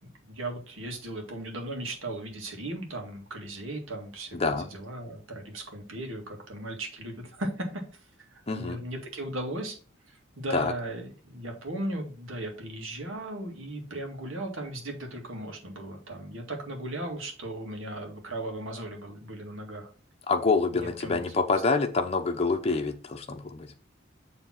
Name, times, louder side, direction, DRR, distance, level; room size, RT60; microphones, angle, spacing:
voice 1, 0.0-7.8 8.3-9.8 10.1-19.9 20.7-21.2, right 1 dB, 80° right, 2 dB, 2.0 m, -37 dB
voice 2, 4.3-4.7 8.5-8.8 10.5-10.7 20.3-23.7, left 4 dB, 30° left, 4 dB, 0.7 m, -26 dB
7.0 x 3.5 x 5.8 m, 0.38 s
head